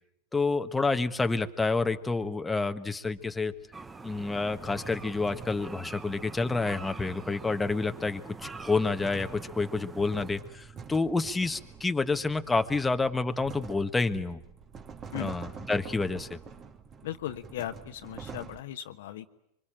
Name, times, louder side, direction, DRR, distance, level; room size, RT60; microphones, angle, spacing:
voice 1, 0.3-3.5 4.0-14.4 15.2-16.4, left 3 dB, 10° left, 7 dB, 1.3 m, -29 dB
sound 1, 0.7-2.0 3.0-7.6 8.2-18.6, right 5 dB, 30° right, 2.2 m, -47 dB
sound 2, 3.7-10.3, right 3 dB, 15° right, 1.2 m, -44 dB
voice 2, 17.0-19.3, left 12 dB, 70° left, 9 dB, 1.3 m, -37 dB
25.0 x 24.0 x 9.0 m, 0.82 s
hypercardioid pair, 100°, 0 cm